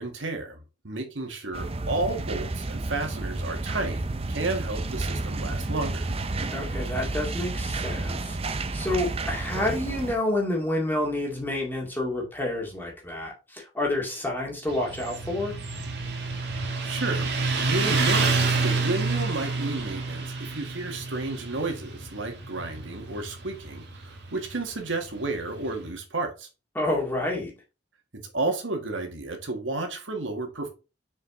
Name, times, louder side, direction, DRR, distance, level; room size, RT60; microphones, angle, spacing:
voice 1, 0.0-6.1 16.8-17.4 17.6-26.5 28.1-30.7, right 2 dB, 80° right, 1.8 m, -32 dB
sound 1, 1.5-10.1, right 2 dB, 30° right, 0.5 m, -31 dB
voice 2, 6.5-8.4 8.7-15.5 26.8-27.5, left 1 dB, 10° left, 2.1 m, -29 dB
Motorcycle, 14.7-25.8, right 3 dB, 60° right, 1.6 m, -28 dB
6.4 x 4.8 x 3.7 m
head